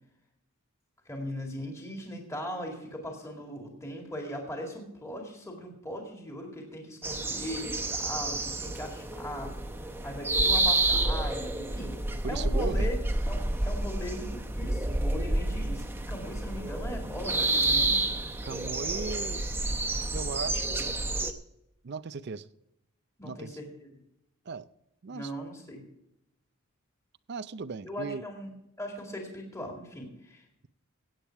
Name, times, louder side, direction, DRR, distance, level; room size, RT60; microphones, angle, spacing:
voice 1, 1.1-12.0 12.3-13.0 13.3-18.0 23.2-23.9 25.1-25.8 27.8-30.7, equal, 15° left, 1 dB, 2.1 m, -39 dB
sound 1, 7.0-21.3, right 2 dB, 10° right, 0.7 m, -29 dB
voice 2, 12.2-13.0 18.4-19.4 20.1-20.9 21.8-22.5 23.2-23.6 24.5-24.7 25.0-25.3 27.3-28.2, right 4 dB, 50° right, 16 dB, 0.5 m, -37 dB
16.0 x 8.9 x 4.6 m, 0.84 s
head